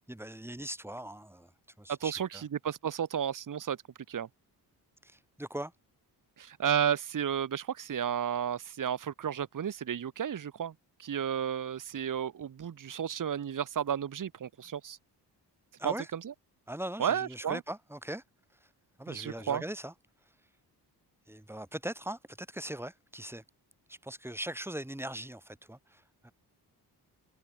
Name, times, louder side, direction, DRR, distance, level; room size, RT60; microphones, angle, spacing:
voice 1, 0.1-1.5 1.8-2.4 5.0-5.7 15.8-16.1 16.7-18.2 18.6-18.7 19.0-19.9 21.3-23.4 23.9-26.3, right 1 dB, 5° right, 6.7 m, -40 dB
voice 2, 1.9-3.8 4.1-4.3 6.4-10.7 11.0-15.0 15.8-16.3 17.0-17.6 19.1-19.6, right 8 dB, 50° right, 1.7 m, -32 dB
cardioid pair, 100°, 41 cm